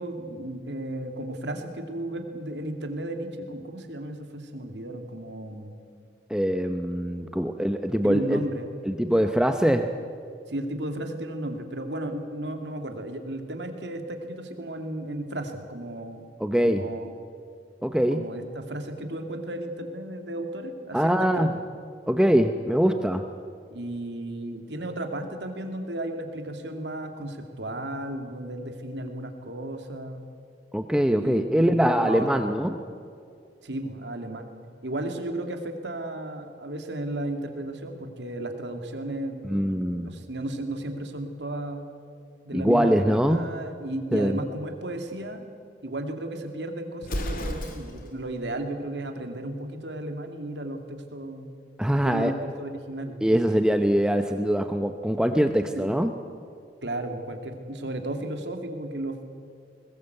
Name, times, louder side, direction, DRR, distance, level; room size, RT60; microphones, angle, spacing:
voice 1, 0.0-5.8 8.0-8.7 10.5-16.2 16.6-17.1 18.1-21.5 23.7-30.2 31.1-32.7 33.6-34.5 34.8-41.9 42.5-45.5 45.8-51.5 52.0-53.2 55.8-55.9 56.8-59.2, right 1 dB, 85° right, 5 dB, 2.4 m, -34 dB
voice 2, 6.3-8.4 8.8-9.9 16.4-16.8 17.8-18.2 20.9-21.5 22.1-23.2 30.7-32.7 39.4-40.1 42.5-43.5 44.1-44.4 51.8-52.3 53.2-56.1, equal, 5° right, 6 dB, 0.7 m, -23 dB
Explosion, 47.0-48.2, left 1 dB, 55° left, 2.5 m, -32 dB
21.5 x 19.5 x 8.1 m, 2.3 s
head